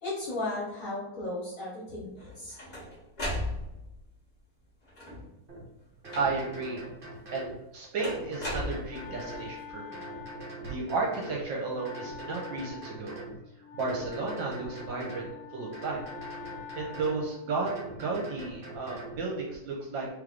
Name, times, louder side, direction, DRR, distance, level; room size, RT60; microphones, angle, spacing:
voice 1, 0.0-2.6, left 2 dB, 45° left, -6 dB, 1.3 m, -35 dB
sound 1, 2.2-4.0 4.9-5.4 6.1-6.6 8.0-9.3, left 1 dB, 25° left, 0.9 m, -36 dB
sound 2, 5.5-5.6 6.0-7.6 8.0-9.5 9.9-11.4 11.8-13.4 13.8-15.3 15.7-17.2 17.7-19.2, right 2 dB, 50° right, 0.6 m, -43 dB
voice 2, 6.2-6.8 7.3-10.0 10.6-13.2 13.7-16.0 16.8-20.1, right 3 dB, 70° right, -2 dB, 1.3 m, -33 dB
Wind instrument woodwind instrument, 8.4-17.5, left 6 dB, 85° left, 0.8 m, -47 dB
3.5 x 3.2 x 3.6 m, 0.93 s
omnidirectional pair, 2.4 m